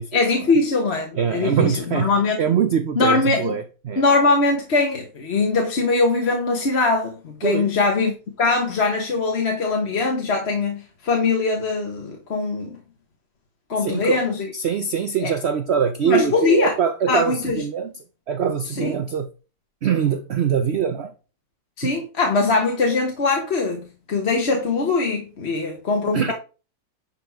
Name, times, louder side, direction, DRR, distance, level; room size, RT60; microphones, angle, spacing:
voice 1, 0.1-2.4 3.0-3.5 4.0-8.1 8.4-12.8 13.7-14.5 15.2-15.3 16.0-16.7 17.1-17.6 18.8-18.9 21.8-26.3, left 3 dB, 40° left, 1.3 m, -21 dB
voice 2, 1.1-2.1 2.4-4.0 7.4-7.8 13.8-14.2 14.5-17.9 18.3-19.3 19.8-21.1 21.8-22.0 26.1-26.3, right 7 dB, 65° right, 0.6 m, -23 dB
10.5 x 4.3 x 4.7 m
omnidirectional pair, 1.8 m